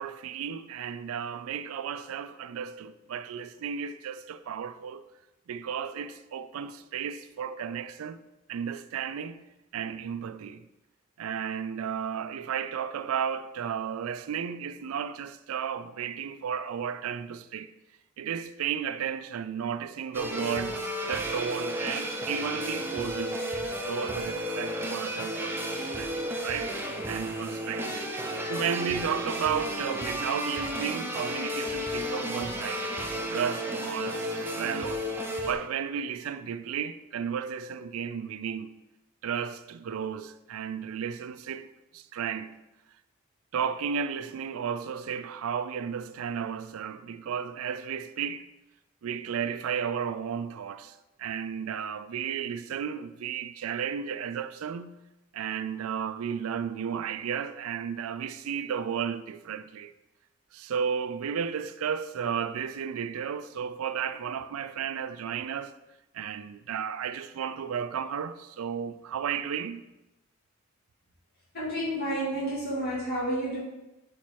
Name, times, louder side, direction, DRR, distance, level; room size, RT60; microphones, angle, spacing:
voice 1, 0.0-5.0 5.5-8.2 8.5-9.4 9.7-10.7 11.2-17.7 18.2-20.8 21.0-28.1 28.4-33.0 33.3-35.1 35.4-38.7 39.2-41.7 41.9-42.6 43.5-48.5 49.0-54.9 55.3-59.9 60.5-65.7 66.1-69.8, right 7 dB, 80° right, 0.4 m, -33 dB
sound 1, 20.1-35.5, equal, 10° right, 0.7 m, -33 dB
voice 2, 71.5-73.6, right 1 dB, 45° left, 2.3 m, -30 dB
5.1 x 4.3 x 4.6 m
head